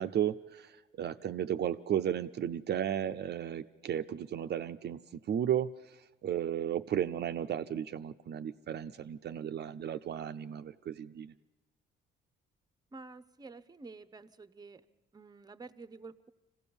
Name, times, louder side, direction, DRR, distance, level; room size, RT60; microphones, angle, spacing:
voice 1, 0.0-5.0 5.3-5.7 6.2-11.3, right 10 dB, 55° right, 8 dB, 0.6 m, -34 dB
voice 2, 12.9-14.8 15.1-16.3, right 3 dB, 20° right, 14 dB, 0.8 m, -49 dB
25.5 x 16.0 x 7.0 m, 1.2 s
cardioid pair, 90°, 20 cm